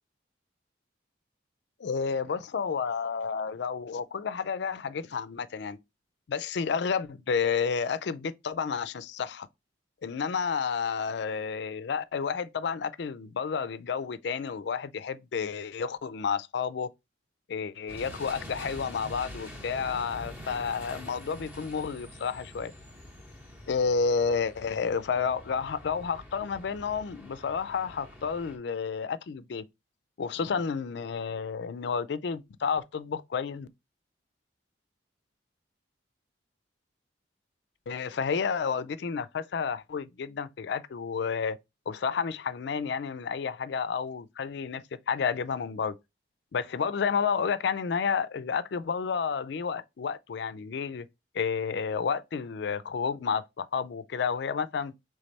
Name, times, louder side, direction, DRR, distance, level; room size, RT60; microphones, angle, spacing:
voice 1, 1.8-5.8 6.3-9.5 10.0-16.9 17.5-22.7 23.7-29.6 30.2-33.7 37.9-41.6 41.9-45.9 46.5-51.1 51.3-54.9, left 6 dB, 60° left, 0.4 m, -31 dB
sound 1, 17.9-28.6, left 1 dB, 10° right, 0.9 m, -46 dB
3.4 x 3.2 x 4.0 m
head